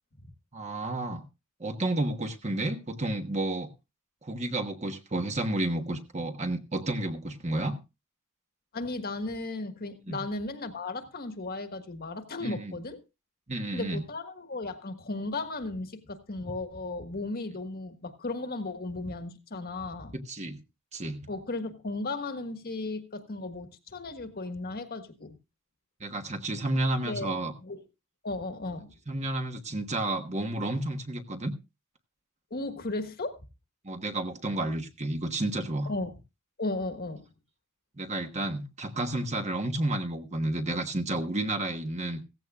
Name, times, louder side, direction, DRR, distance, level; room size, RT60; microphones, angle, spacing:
voice 1, 0.5-1.3 1.6-3.7 4.2-7.8 10.1-10.2 12.4-12.8 13.5-14.0 20.1-20.6 20.9-21.2 26.0-27.5 29.1-31.5 33.8-35.9 38.0-42.2, right 1 dB, 30° right, 1.2 m, -31 dB
voice 2, 8.7-13.0 13.7-20.2 21.3-25.4 27.0-27.3 27.6-27.8 28.2-28.9 32.5-33.4 35.8-36.1 36.6-37.2, left 2 dB, 45° left, 1.5 m, -35 dB
16.0 x 15.0 x 2.4 m
head